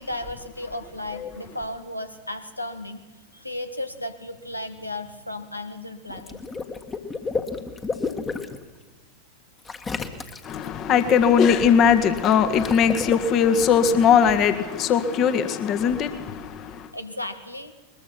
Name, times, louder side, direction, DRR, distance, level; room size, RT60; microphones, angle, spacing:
voice 1, 0.0-3.0 3.3-6.4 16.9-17.7, left 1 dB, 85° left, 1.7 m, -34 dB
Water / Liquid, 6.1-8.6 9.6-10.7 12.2-13.1, left 4 dB, 20° left, 1.7 m, -31 dB
voice 2, 10.4-16.9, left 7 dB, 35° left, 1.7 m, -20 dB
21.5 x 21.5 x 6.1 m
figure-of-eight pair, 90°, 0 cm